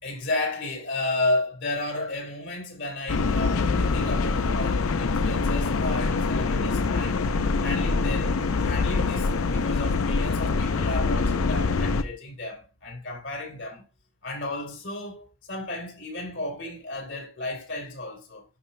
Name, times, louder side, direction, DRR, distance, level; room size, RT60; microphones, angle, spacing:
voice 1, 0.0-7.2 7.6-13.9 14.2-18.5, left 2 dB, 60° left, 3.2 m, -33 dB
sound 1, 3.1-12.0, left 4 dB, 90° left, 0.6 m, -24 dB
sound 2, 6.1-6.2 6.8-8.2 8.5-9.6 10.2-12.1, left 1 dB, 10° left, 0.5 m, -41 dB
11.5 x 4.8 x 2.2 m
head